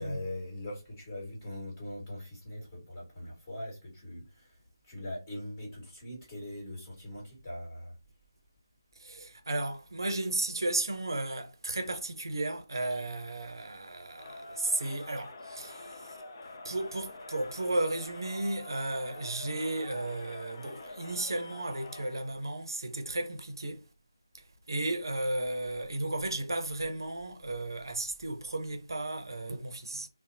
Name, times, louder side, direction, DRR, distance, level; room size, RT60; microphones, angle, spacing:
voice 1, 0.0-4.6 4.8-7.9, left 1 dB, 20° left, 1.4 m, -41 dB
voice 2, 9.0-16.2 16.6-23.9 24.3-30.1, right 2 dB, 65° right, 0.5 m, -34 dB
Crowd, 14.1-22.3, left 2 dB, 40° left, 0.5 m, -46 dB
2.7 x 2.0 x 2.6 m
figure-of-eight pair, 160°, 2 cm